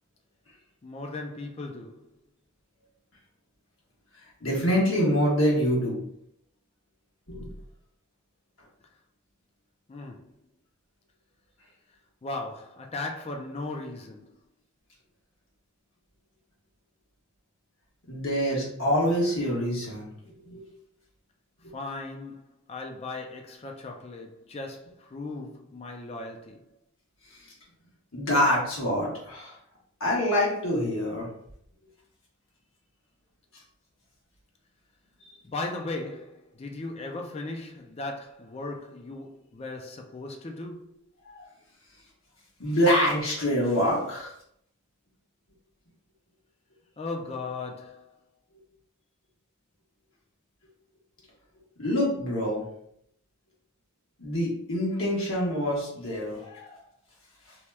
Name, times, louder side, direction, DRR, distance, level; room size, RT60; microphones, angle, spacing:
voice 1, 0.8-2.2 9.9-10.3 12.2-14.4 21.7-26.7 35.4-40.9 47.0-48.1, left 2 dB, 30° left, 0.3 m, -37 dB
voice 2, 4.4-6.0 7.3-7.5 18.1-20.7 21.6-21.7 28.1-29.5 30.0-31.3 42.6-44.3 51.8-52.6 54.2-56.7, equal, 70° left, 1.2 m, -26 dB
2.9 x 2.2 x 3.2 m
head